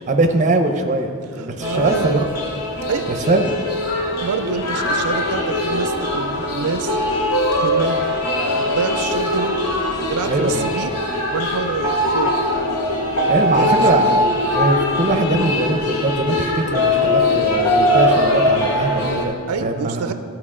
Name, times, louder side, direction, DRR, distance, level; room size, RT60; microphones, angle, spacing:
voice 1, 0.1-2.2 3.1-3.6 10.3-10.8 13.3-20.1, right 2 dB, 35° right, 5 dB, 0.6 m, -21 dB
voice 2, 1.4-2.2 2.9-3.1 4.2-6.9 7.6-8.2 8.5-9.6 10.1-10.9 11.3-12.3 13.4-14.1 19.5-20.1, right 5 dB, 85° right, 9 dB, 0.4 m, -26 dB
sound 1, 1.6-19.2, left 1 dB, 85° left, 1.1 m, -21 dB
12.5 x 4.6 x 3.7 m, 2.3 s
head